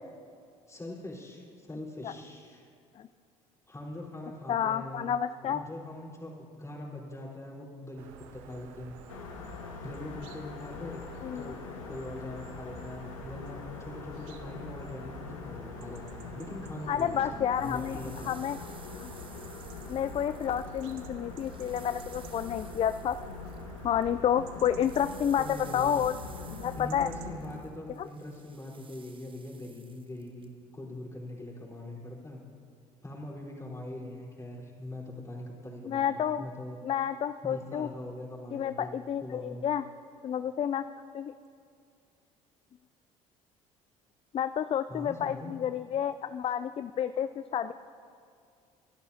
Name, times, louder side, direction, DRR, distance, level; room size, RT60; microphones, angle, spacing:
voice 1, 0.7-2.7 3.7-9.0 9.8-11.0 11.3-11.6 11.8-18.4 25.4-26.0 26.8-32.4 33.0-36.8 37.4-38.9 39.2-39.6 44.9-45.5, left 1 dB, 15° left, -3 dB, 4.0 m, -42 dB
voice 2, 4.5-5.6 11.2-11.4 16.9-18.0 18.3-18.6 19.0-19.1 19.9-23.2 23.8-26.2 26.5-27.1 28.0-28.1 35.9-36.5 36.8-37.9 38.5-39.8 40.2-40.8 41.1-41.3 44.3-47.7, left 9 dB, 35° left, 12 dB, 0.4 m, -30 dB
sound 1, 8.0-27.3, right 7 dB, 80° right, 0.8 m, -50 dB
sound 2, 9.1-27.6, left 5 dB, 90° left, 0.9 m, -44 dB
sound 3, 17.3-24.1 24.4-30.5, right 5 dB, 30° right, 1.1 m, -55 dB
26.0 x 11.5 x 2.8 m, 2.3 s
hypercardioid pair, 60°, 17 cm